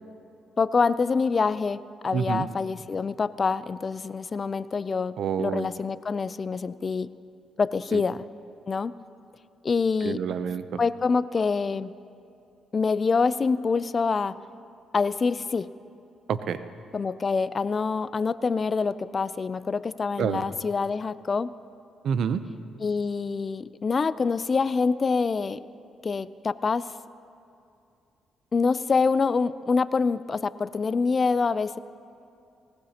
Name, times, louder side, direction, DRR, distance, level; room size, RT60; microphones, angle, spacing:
voice 1, 0.6-7.1 7.6-8.3 8.7-8.9 9.6-10.2 10.8-12.0 12.7-14.4 14.9-15.7 16.9-21.5 22.8-25.6 26.0-26.9 28.5-31.8, left 4 dB, 35° left, 16 dB, 0.4 m, -26 dB
voice 2, 2.1-2.5 5.2-5.7 7.9-8.0 10.0-10.8 16.3-16.6 20.2-20.4 22.0-22.4, right 7 dB, 70° right, 12 dB, 0.6 m, -28 dB
19.5 x 19.5 x 2.9 m, 2.5 s
cardioid pair, 90°, 0 cm